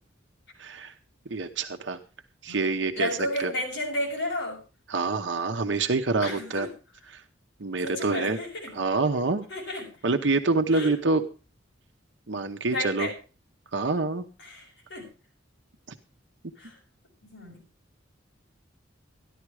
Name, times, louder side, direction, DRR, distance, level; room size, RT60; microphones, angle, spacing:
voice 1, 0.6-0.9 1.3-2.0 2.4-3.1 3.4-3.5 4.9-6.7 7.1-7.2 7.6-8.4 8.7-9.5 10.0-11.2 12.3-13.1 13.7-14.2 15.9-16.0, right 3 dB, 65° right, 6 dB, 0.9 m, -26 dB
voice 2, 3.0-4.6 6.2-6.7 7.8-8.7 9.5-9.9 10.7-10.9 12.7-13.1 14.4-15.1 16.6-16.7 17.2-17.6, left 1 dB, 65° left, -1 dB, 7.1 m, -32 dB
14.0 x 11.0 x 4.8 m, 0.34 s
head